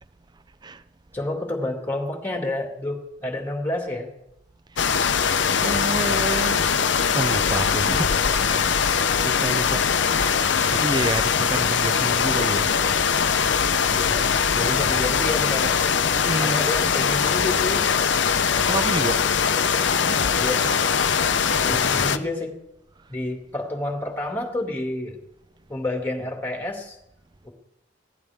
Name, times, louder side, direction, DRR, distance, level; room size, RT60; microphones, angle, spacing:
voice 1, 0.3-0.8 5.6-6.7 7.1-9.8 10.1-12.8 16.1-16.6 18.7-19.3 20.1-20.3 23.0-23.1, right 2 dB, 25° right, 0.5 m, -30 dB
voice 2, 1.1-4.1 13.8-14.3 14.5-15.8 16.4-17.9 20.4-20.7 21.6-22.6 23.1-25.2 25.7-27.0 27.4-27.5, left 1 dB, 10° left, 2.3 m, -29 dB
sound 1, 4.8-22.2, left 6 dB, 70° left, 0.7 m, -21 dB
21.5 x 16.5 x 3.6 m
head